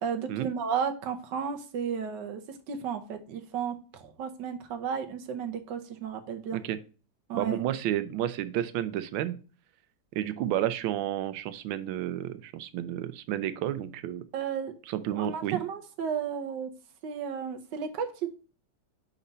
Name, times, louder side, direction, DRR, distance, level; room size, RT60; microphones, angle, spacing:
voice 1, 0.0-2.4 2.7-6.6 7.3-7.6 14.3-14.7 15.1-16.7 17.0-18.3, right 7 dB, 70° right, 6 dB, 1.4 m, -33 dB
voice 2, 7.3-9.4 10.1-14.2 14.9-15.6, right 12 dB, 85° right, 13 dB, 1.4 m, -31 dB
4.9 x 4.2 x 5.3 m, 0.36 s
omnidirectional pair, 2.1 m